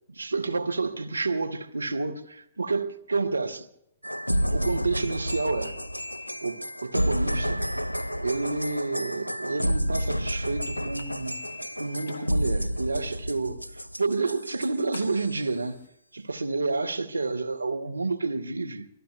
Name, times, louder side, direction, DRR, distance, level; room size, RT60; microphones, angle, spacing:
voice 1, 0.1-3.7 4.5-5.8 6.4-7.7 8.2-11.4 11.8-15.8 16.1-18.9, right 3 dB, 75° right, 0.9 m, -29 dB
sound 1, 4.0-15.4, equal, 85° left, 0.5 m, -30 dB
sound 2, 11.0-12.3 14.9-15.9, left 6 dB, 45° left, 1.2 m, -49 dB
26.0 x 21.5 x 2.3 m
figure-of-eight pair, 115°, 0 cm